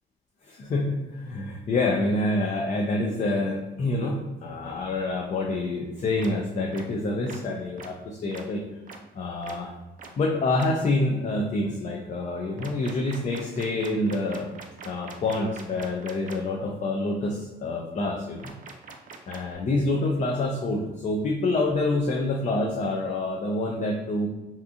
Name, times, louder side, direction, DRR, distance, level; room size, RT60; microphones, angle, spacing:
voice 1, 0.5-8.6 9.1-9.7 10.2-14.5 14.8-18.5 19.3-24.3, left 2 dB, 40° left, 0 dB, 0.4 m, -27 dB
sound 1, 6.2-6.3 6.7-6.8 7.3-7.4 7.8-7.9 8.3-8.4 8.9-9.0 9.4-9.5 10.0-10.1 10.6-10.7 12.6-16.4 18.4-19.6, right 5 dB, 45° right, 0.4 m, -42 dB
2.7 x 2.4 x 2.4 m, 1.1 s
cardioid pair, 90°, 20 cm